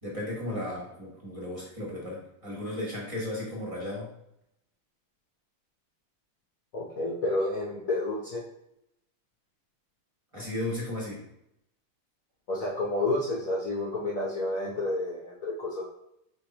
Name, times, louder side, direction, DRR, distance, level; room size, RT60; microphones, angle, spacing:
voice 1, 0.0-4.1 10.3-11.2, left 1 dB, 20° right, -5 dB, 0.9 m, -35 dB
voice 2, 6.7-8.4 12.5-15.9, left 2 dB, 60° left, -5 dB, 0.9 m, -30 dB
4.8 x 3.6 x 2.9 m, 0.80 s
omnidirectional pair, 2.4 m